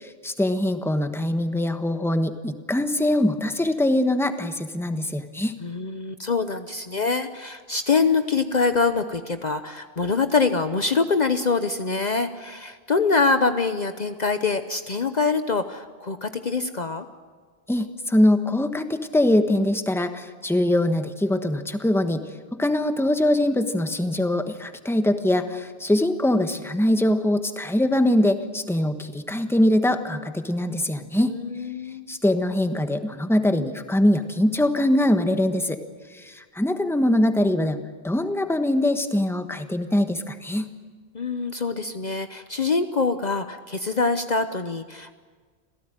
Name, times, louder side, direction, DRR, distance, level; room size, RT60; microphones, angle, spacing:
voice 1, 0.2-5.5 17.7-22.2 22.6-31.3 32.1-35.8 36.2-37.8 38.0-40.7, left 1 dB, ahead, 7 dB, 1.2 m, -22 dB
voice 2, 5.6-17.0 31.1-32.1 41.1-45.2, left 4 dB, 45° left, 9 dB, 0.9 m, -24 dB
27.0 x 17.0 x 9.1 m, 1.5 s
omnidirectional pair, 1.0 m